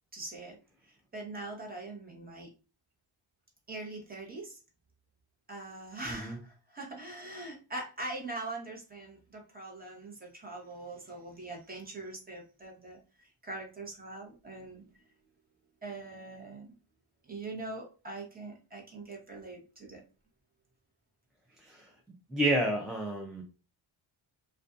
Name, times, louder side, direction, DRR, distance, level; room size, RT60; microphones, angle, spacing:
voice 1, 0.1-0.6 0.9-2.5 3.7-4.6 5.5-14.9 15.8-16.7 17.2-20.0, right 2 dB, 20° right, -1 dB, 0.8 m, -42 dB
voice 2, 22.3-23.4, right 1 dB, ahead, -1 dB, 0.3 m, -30 dB
2.5 x 2.3 x 2.4 m, 0.34 s
cardioid pair, 95°, 48 cm